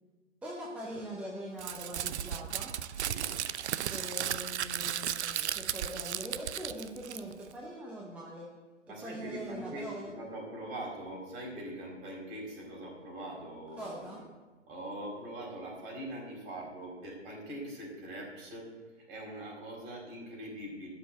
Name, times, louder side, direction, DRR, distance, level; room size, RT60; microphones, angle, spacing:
voice 1, 0.4-2.7 3.9-8.5 9.0-10.1 13.8-14.2, right 1 dB, 5° right, -3 dB, 0.7 m, -42 dB
Crumpling crinkling, 1.6-7.5, right 10 dB, 65° right, 0.6 m, -35 dB
voice 2, 8.9-14.2 14.7-18.7 19.0-20.9, right 1 dB, 40° right, -2 dB, 4.7 m, -42 dB
11.0 x 5.9 x 8.7 m, 1.3 s
hypercardioid pair, 140°, 37 cm